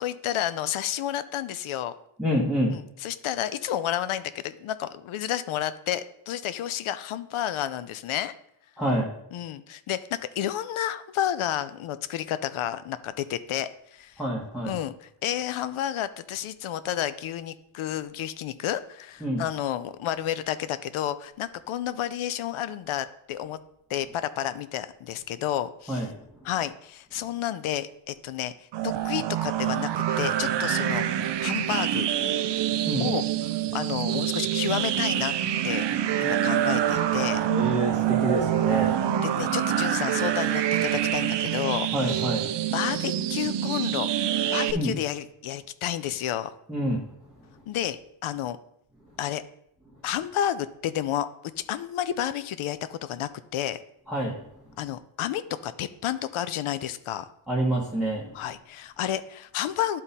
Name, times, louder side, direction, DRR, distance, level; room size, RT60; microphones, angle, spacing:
voice 1, 0.0-1.9 2.7-8.3 9.3-14.2 14.6-23.6 23.9-26.0 26.4-28.5 28.8-29.9 30.2-31.0 31.4-32.1 33.0-33.2 33.5-35.3 35.6-35.8 36.2-37.4 39.2-42.2 42.7-44.1 44.5-46.6 47.7-48.6 49.2-49.4 50.0-51.3 51.7-53.8 54.8-57.3 58.3-60.0, left 11 dB, 75° left, 14 dB, 0.6 m, -31 dB
voice 2, 2.2-2.7 8.8-9.1 14.2-14.8 19.2-19.4 25.9-26.1 32.9-33.1 37.5-38.9 41.9-42.4 44.7-44.9 46.7-47.0 54.1-54.5 57.5-58.3, equal, ahead, -5 dB, 1.2 m, -27 dB
sound 1, 28.7-44.7, right 11 dB, 60° right, 0.5 m, -26 dB
10.5 x 3.8 x 4.1 m, 0.76 s
cardioid pair, 115°, 50 cm